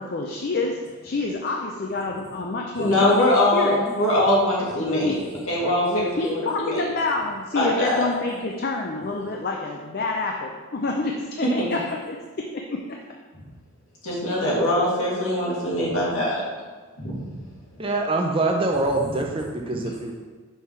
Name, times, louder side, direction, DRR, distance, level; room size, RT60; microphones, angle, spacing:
voice 1, 0.0-3.9 4.7-5.2 5.8-12.8, left 2 dB, 45° left, 1 dB, 0.5 m, -28 dB
voice 2, 2.8-5.2 5.5-6.8 7.5-8.1 11.4-11.5 14.0-16.4 17.0-17.2, left 1 dB, 70° left, -5 dB, 2.2 m, -22 dB
voice 3, 17.8-20.1, right 2 dB, 25° right, 1 dB, 0.6 m, -24 dB
5.6 x 4.7 x 5.6 m, 1.4 s
head